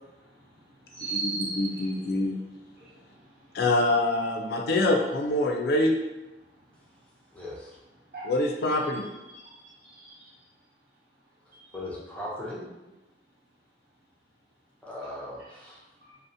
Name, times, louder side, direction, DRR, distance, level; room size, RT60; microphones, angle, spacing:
voice 1, 0.0-3.6 4.5-4.7 8.1-10.3 11.5-11.7 16.0-16.2, right 3 dB, 60° right, -7 dB, 0.9 m, -40 dB
voice 2, 1.6-2.3 3.5-5.9 8.3-9.0, left 2 dB, 60° left, 2 dB, 0.4 m, -25 dB
voice 3, 7.3-7.8 11.7-12.7 14.8-15.8, left 1 dB, 5° left, -6 dB, 0.5 m, -38 dB
2.7 x 2.0 x 2.5 m, 1.0 s
head